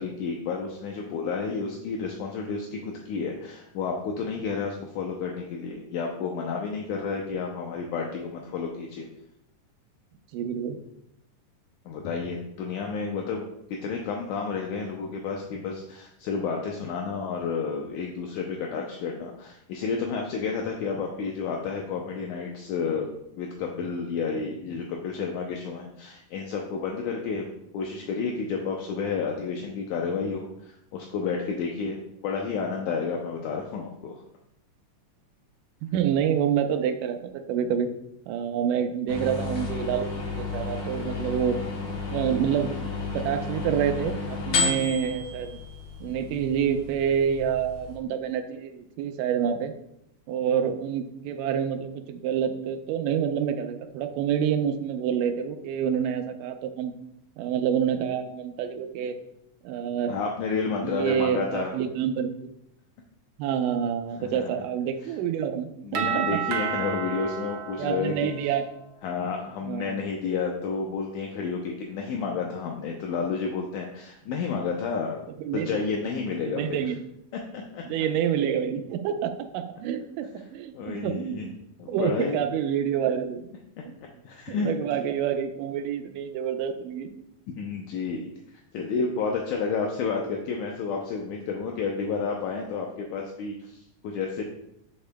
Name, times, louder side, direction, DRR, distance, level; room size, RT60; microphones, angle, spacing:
voice 1, 0.0-9.1 11.9-13.4 13.7-23.1 23.4-27.5 27.7-32.0 32.2-34.2 60.1-61.7 64.2-64.5 65.8-68.3 69.0-75.2 75.5-76.8 77.5-77.8 80.8-81.5 81.8-82.4 84.0-84.7 87.6-94.4, left 5 dB, 75° left, 1 dB, 2.0 m, -31 dB
voice 2, 10.3-10.8 35.8-37.9 38.3-41.6 42.1-42.7 43.1-44.2 44.5-45.6 46.0-49.7 50.3-56.9 57.4-59.2 59.6-60.1 60.8-62.3 63.4-66.4 67.8-68.6 69.6-70.0 75.4-75.7 76.5-77.0 77.8-80.3 80.5-81.4 81.9-83.5 83.9-84.0 84.5-87.1, right 8 dB, 90° right, 8 dB, 2.2 m, -27 dB
sound 1, 39.1-48.0, left 4 dB, 55° left, 1.9 m, -32 dB
Doorbell, 65.9-68.8, right 7 dB, 70° right, 1.6 m, -31 dB
8.0 x 7.2 x 2.2 m, 0.79 s
omnidirectional pair, 3.7 m